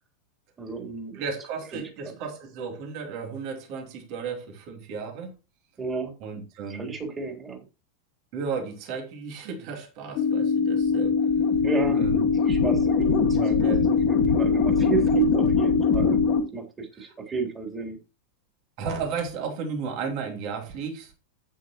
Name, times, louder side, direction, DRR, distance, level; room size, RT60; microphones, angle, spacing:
voice 1, 0.6-1.2 1.7-2.1 5.8-6.1 6.7-7.6 11.6-16.2 16.5-18.0, right 5 dB, 20° right, 3.7 m, -32 dB
voice 2, 1.1-5.3 6.2-6.9 8.3-11.2 11.9-12.2 13.3-13.8 17.0-17.1 18.8-21.1, right 5 dB, 45° right, 2.9 m, -34 dB
sound 1, 10.2-16.4, left 5 dB, 40° left, 1.9 m, -22 dB
10.5 x 9.1 x 2.9 m
figure-of-eight pair, 90°, 0 cm